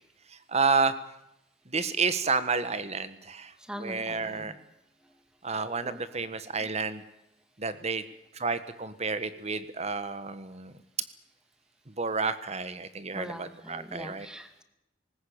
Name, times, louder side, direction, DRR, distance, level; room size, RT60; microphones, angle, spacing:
voice 1, 0.5-0.9 1.7-3.5 3.8-4.5 5.4-7.0 7.6-8.0 8.4-10.7 12.0-14.3, right 4 dB, 35° right, 12 dB, 1.5 m, -30 dB
voice 2, 3.7-4.6 5.8-6.0 13.2-14.6, equal, 5° right, 8 dB, 2.2 m, -42 dB
20.0 x 18.5 x 8.8 m, 0.84 s
head